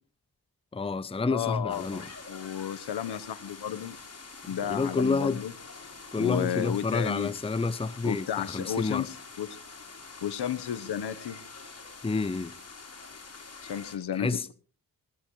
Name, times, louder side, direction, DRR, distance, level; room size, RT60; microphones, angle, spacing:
voice 1, 0.7-2.0 4.6-5.4 6.1-9.1 12.0-12.5 14.1-14.5, left 3 dB, 15° left, 0.7 m, -29 dB
voice 2, 1.3-4.0 4.5-5.5 6.2-7.3 8.0-9.6 10.2-11.4 13.6-14.3, left 9 dB, 75° left, 1.2 m, -32 dB
sound 1, 1.7-14.0, left 4 dB, 40° left, 4.3 m, -46 dB
20.0 x 17.0 x 3.2 m
cardioid pair, 75°, 39 cm